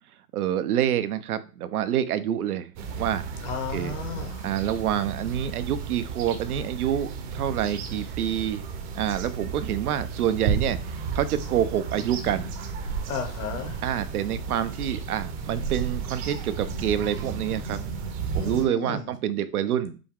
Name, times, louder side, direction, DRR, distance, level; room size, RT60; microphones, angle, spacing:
voice 1, 0.3-2.7 3.0-3.2 3.7-4.0 4.4-8.6 8.9-12.5 13.8-17.8 18.3-20.0, right 10 dB, 85° right, 11 dB, 0.7 m, -27 dB
sound 1, 2.8-18.7, right 5 dB, 35° right, 0.7 m, -33 dB
voice 2, 3.4-4.5 13.1-13.8 18.3-19.1, left 5 dB, 25° left, 6 dB, 0.8 m, -34 dB
5.1 x 2.3 x 3.6 m, 0.35 s
hypercardioid pair, 145°, 43 cm